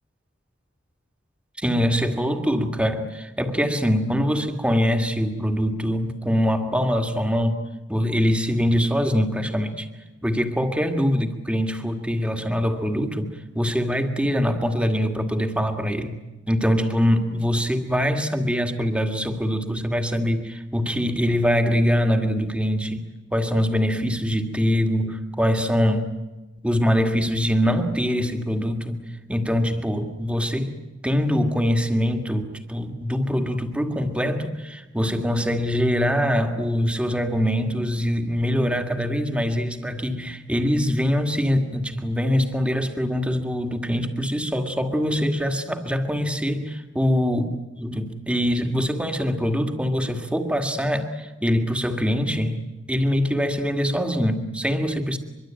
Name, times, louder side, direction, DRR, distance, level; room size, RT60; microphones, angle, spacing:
voice 1, 1.6-7.6 7.9-9.9 10.2-13.3 13.5-16.2 16.5-23.0 23.3-26.1 26.6-47.4 47.8-52.6 52.9-55.2, equal, 5° right, 6 dB, 2.0 m, -23 dB
24.0 x 23.5 x 9.0 m, 1.1 s
head